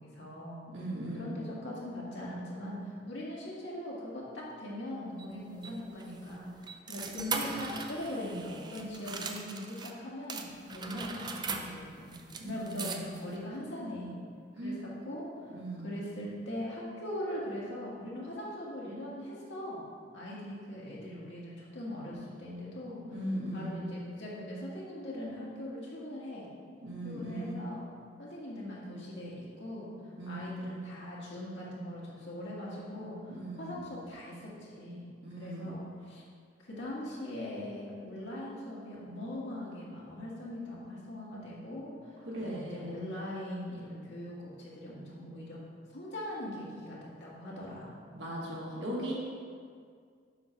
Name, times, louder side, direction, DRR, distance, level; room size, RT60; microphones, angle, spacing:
voice 1, 0.0-0.6 1.1-2.8 3.1-6.5 6.9-10.4 10.7-12.1 12.4-14.2 14.6-14.7 15.1-15.6 15.8-19.8 20.1-23.0 23.5-26.5 27.0-27.9 28.2-29.9 30.3-36.2 36.6-45.6 45.9-48.0, left 1 dB, 70° left, -6 dB, 1.8 m, -41 dB
voice 2, 0.7-1.4 12.4-13.2 14.6-14.8 15.5-16.0 22.9-23.8 26.8-27.6 30.2-30.7 33.3-33.8 35.2-35.9 42.3-43.0 48.1-49.1, right 1 dB, 70° right, -5 dB, 1.7 m, -39 dB
sound 1, 5.2-9.9 10.3-13.4, right 5 dB, 25° right, 0.4 m, -40 dB
7.7 x 3.3 x 5.9 m, 2.1 s
head